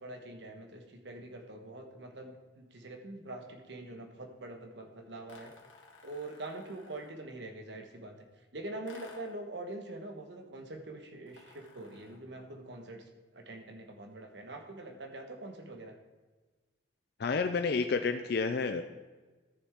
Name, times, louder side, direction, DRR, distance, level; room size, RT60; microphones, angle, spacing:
voice 1, 0.0-5.5 6.0-8.2 8.5-13.0 13.3-15.9, right 2 dB, 65° right, 4 dB, 1.3 m, -44 dB
sound 1, 5.3-7.3 8.9-9.5 11.3-12.3, left 3 dB, 90° left, 1.7 m, -56 dB
voice 2, 17.2-18.8, left 4 dB, 55° left, 7 dB, 0.4 m, -30 dB
13.5 x 7.0 x 3.6 m, 1.3 s
head